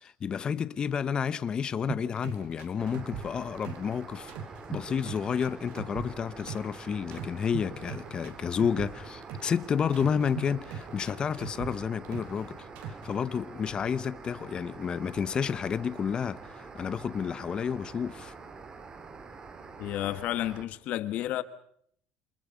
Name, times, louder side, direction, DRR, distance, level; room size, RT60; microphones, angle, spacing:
voice 1, 0.0-4.3 4.7-12.5 12.9-18.3, left 7 dB, 30° left, 1.1 m, -31 dB
sound 1, 1.9-4.0 4.3-6.8 7.1-9.6 9.9-12.4 12.8-13.1, right 6 dB, 75° right, 4.9 m, -39 dB
sound 2, 2.8-20.6, right 4 dB, 25° right, 2.6 m, -46 dB
voice 2, 19.8-21.4, left 13 dB, 55° left, 1.3 m, -31 dB
27.5 x 27.5 x 5.3 m
cardioid pair, 140°, 3 cm